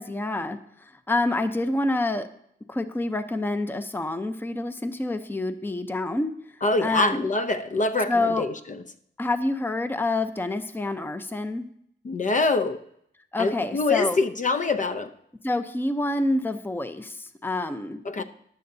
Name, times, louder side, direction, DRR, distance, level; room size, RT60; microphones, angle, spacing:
voice 1, 0.0-2.3 2.7-6.3 6.8-7.3 8.1-8.4 9.2-11.7 13.3-14.2 15.4-18.2, left 2 dB, 10° left, 9 dB, 0.7 m, -27 dB
voice 2, 6.6-8.8 12.0-12.8 13.4-15.1 18.0-18.2, left 3 dB, 40° left, 8 dB, 0.7 m, -25 dB
14.5 x 10.5 x 2.7 m, 0.70 s
wide cardioid pair, 105°, 20 cm